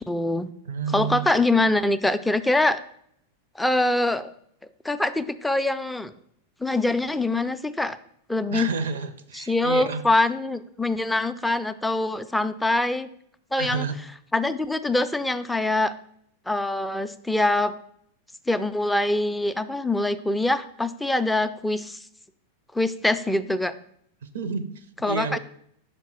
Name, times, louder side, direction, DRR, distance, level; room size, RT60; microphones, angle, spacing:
voice 1, 0.1-0.5 0.9-2.8 3.6-4.3 4.8-6.1 6.6-8.0 8.3-8.7 9.3-13.1 13.5-13.9 14.3-15.9 16.5-17.7 18.5-22.0 22.7-23.7 25.0-25.4, left 2 dB, 5° left, 11 dB, 0.3 m, -24 dB
voice 2, 0.6-1.3 8.5-10.0 13.6-14.0 24.2-25.4, right 5 dB, 60° right, 11 dB, 0.5 m, -30 dB
5.7 x 4.4 x 4.3 m, 0.69 s
figure-of-eight pair, 90°, 0 cm